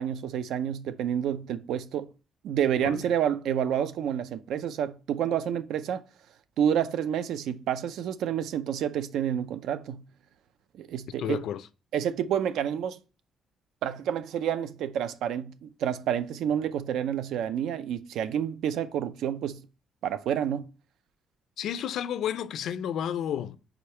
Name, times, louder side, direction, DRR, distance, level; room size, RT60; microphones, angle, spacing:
voice 1, 0.0-2.1 2.4-6.0 6.6-10.0 10.7-11.4 11.9-13.0 13.8-19.6 20.0-20.7, right 9 dB, 80° right, 0.5 m, -29 dB
voice 2, 11.2-11.7 21.6-23.6, left 9 dB, 65° left, 0.4 m, -31 dB
5.1 x 4.7 x 4.3 m
cardioid pair, 175°, 0 cm